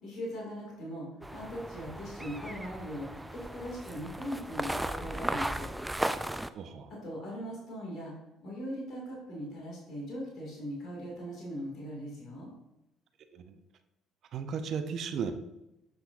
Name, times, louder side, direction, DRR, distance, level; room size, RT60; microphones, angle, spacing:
voice 1, 0.0-3.1 3.3-5.7 7.0-8.1 8.4-12.5, equal, 55° left, -3 dB, 2.2 m, -40 dB
sound 1, 1.2-6.5, right 1 dB, 10° right, 0.4 m, -36 dB
voice 2, 6.5-6.9 13.3-13.6 14.3-15.3, right 6 dB, 60° right, 9 dB, 0.6 m, -35 dB
7.6 x 5.6 x 2.6 m, 0.91 s
hypercardioid pair, 55°, 0 cm